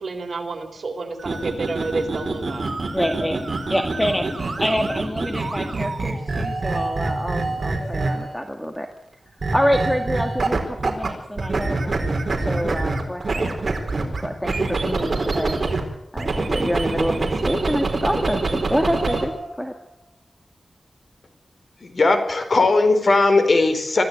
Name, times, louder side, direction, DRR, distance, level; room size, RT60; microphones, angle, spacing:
voice 1, 0.0-2.6, right 3 dB, 65° right, 5 dB, 3.8 m, -30 dB
sound 1, 1.2-8.4 9.4-11.1 11.4-15.8 16.2-19.2, right 3 dB, 45° right, 4.5 m, -25 dB
voice 2, 2.9-3.4 3.7-8.9 9.5-12.1 12.4-13.7 14.0-15.5 16.1-19.3 19.6-19.7, equal, 5° left, 5 dB, 1.9 m, -26 dB
sound 2, 3.9-5.3 7.4-8.9 11.9-13.2 15.3-16.4 18.8-20.1, equal, 80° left, 7.6 m, -41 dB
voice 3, 21.8-24.0, left 3 dB, 55° left, 7 dB, 4.4 m, -18 dB
25.0 x 14.5 x 9.2 m, 0.76 s
wide cardioid pair, 105°, 0 cm